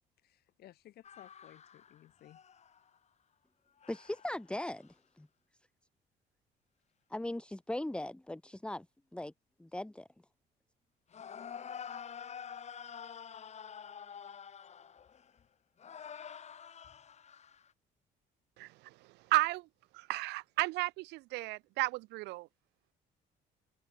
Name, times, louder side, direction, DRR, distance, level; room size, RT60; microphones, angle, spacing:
voice 1, 0.2-2.4, left 13 dB, 70° left, 5.4 m, -57 dB
sound 1, 1.0-3.0 3.8-4.5 4.8-4.9 11.1-15.4 15.8-17.7, left 7 dB, 40° left, 3.7 m, -48 dB
voice 2, 3.9-5.3 7.1-8.9 9.1-9.3 9.6-10.1, left 1 dB, 5° left, 1.8 m, -39 dB
voice 3, 18.6-18.9 19.3-19.7 19.9-22.5, right 21 dB, 90° right, 1.0 m, -33 dB
open air
cardioid pair, 110°, 17 cm